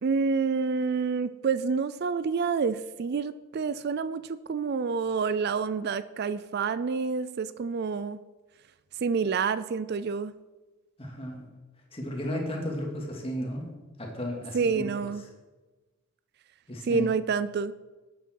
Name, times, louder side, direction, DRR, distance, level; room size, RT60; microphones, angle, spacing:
voice 1, 0.0-8.2 9.0-10.3 14.5-15.2 16.8-17.7, right 5 dB, 45° right, 15 dB, 0.3 m, -28 dB
voice 2, 11.0-11.5 11.9-13.6 14.0-14.8 16.7-17.1, equal, 25° left, 0 dB, 2.3 m, -34 dB
12.5 x 9.1 x 4.6 m, 1.2 s
head